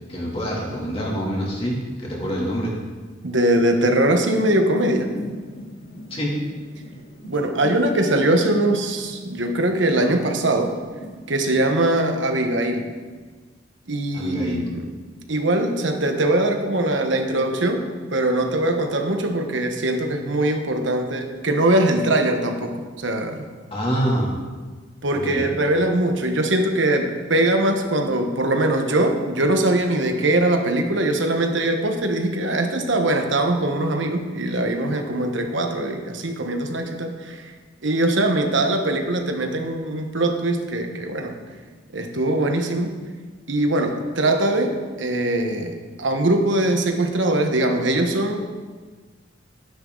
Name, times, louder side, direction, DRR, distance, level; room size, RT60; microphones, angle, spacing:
voice 1, 0.1-2.7 6.1-6.4 14.1-14.6 23.7-24.4 25.1-25.5, equal, 30° left, -4 dB, 2.8 m, -26 dB
voice 2, 3.2-5.1 7.2-10.7 11.3-12.9 13.9-14.9 15.3-23.5 25.0-37.5 37.8-41.4 41.9-43.0 43.5-48.4, right 1 dB, 65° right, 4 dB, 1.3 m, -22 dB
sound 1, 4.2-11.9, equal, 70° left, 2.5 m, -38 dB
13.0 x 10.5 x 3.9 m, 1.4 s
head